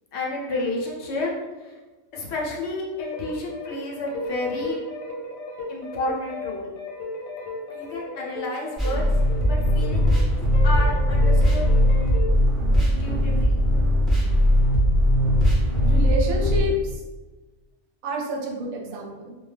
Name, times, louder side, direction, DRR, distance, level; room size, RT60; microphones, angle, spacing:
voice 1, 0.1-1.3 1.6-1.8 2.1-4.8 5.7-6.7 7.7-9.1 9.4-10.2 10.6-11.7 12.8-13.6, left 2 dB, 65° left, -2 dB, 0.8 m, -31 dB
sound 1, 3.0-10.2 10.5-12.4, left 2 dB, 85° left, 1.0 m, -35 dB
sound 2, 8.8-16.6, equal, ahead, 0.4 m, -19 dB
voice 2, 15.8-17.0 18.0-19.4, equal, 90° right, -1 dB, 1.0 m, -28 dB
2.2 x 2.2 x 3.2 m, 1.2 s
omnidirectional pair, 1.4 m